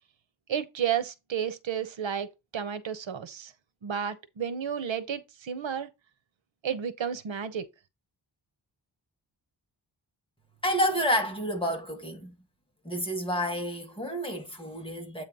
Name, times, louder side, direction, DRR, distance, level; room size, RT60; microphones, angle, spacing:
voice 1, 0.5-3.5 3.8-5.9 6.6-7.7, right 8 dB, 90° right, 1.0 m, -32 dB
voice 2, 10.6-12.3 12.8-15.2, equal, 10° left, 1.9 m, -29 dB
8.2 x 3.2 x 5.3 m
wide cardioid pair, 135°, 45 cm